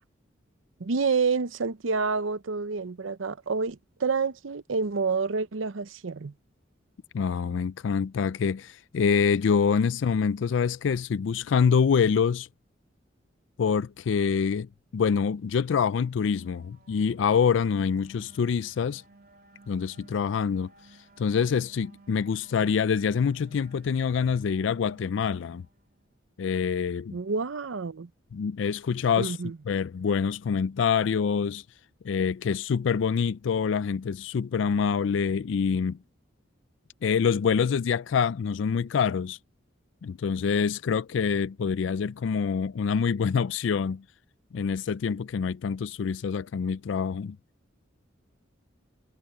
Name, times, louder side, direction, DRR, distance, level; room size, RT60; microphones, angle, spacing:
voice 1, 0.8-6.3 27.1-28.1 29.2-29.6, right 4 dB, 90° right, 0.7 m, -28 dB
voice 2, 7.1-12.5 13.6-19.0 19.7-20.7 21.2-25.7 26.4-27.2 28.3-29.4 29.7-31.6 32.0-36.0 37.0-39.4 40.0-44.0 44.5-47.4, left 6 dB, 75° left, 0.4 m, -26 dB
sound 1, 15.5-26.1, right 2 dB, 50° right, 3.2 m, -57 dB
head